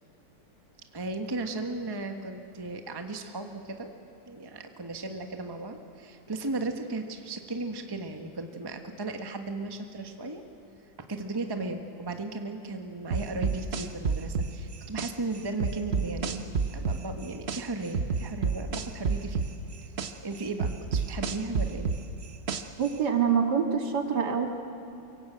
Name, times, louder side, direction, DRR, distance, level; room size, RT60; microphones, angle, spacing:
voice 1, 0.9-3.9 4.3-10.4 11.1-16.5 16.7-19.4 19.8-19.9 20.2-21.9, right 2 dB, 15° right, 5 dB, 1.1 m, -36 dB
sound 1, 13.1-15.1 15.6-17.6 17.9-20.1 20.6-22.9, right 5 dB, 40° right, 1.1 m, -28 dB
voice 2, 22.8-24.5, right 7 dB, 60° right, 3 dB, 2.5 m, -25 dB
25.0 x 23.5 x 7.9 m, 2.8 s
omnidirectional pair, 2.1 m